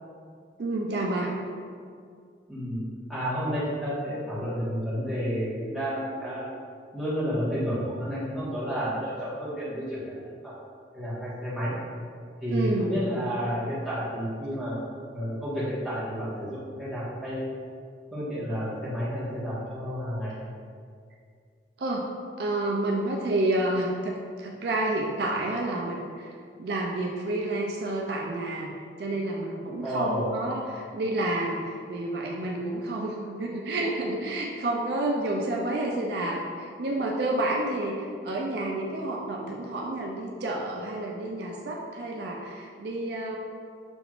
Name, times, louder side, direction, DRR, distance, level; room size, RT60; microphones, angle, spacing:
voice 1, 0.6-1.3 12.5-12.9 21.8-22.1 22.4-26.3 26.6-28.7 29.0-43.4, right 2 dB, 60° right, -1 dB, 0.4 m, -29 dB
voice 2, 2.5-2.8 3.1-6.4 6.9-10.0 10.4-10.5 10.9-11.7 12.4-14.7 15.1-17.5 18.1-20.4 29.8-30.4, equal, ahead, -11 dB, 1.3 m, -30 dB
5.8 x 3.5 x 2.4 m, 2.2 s
head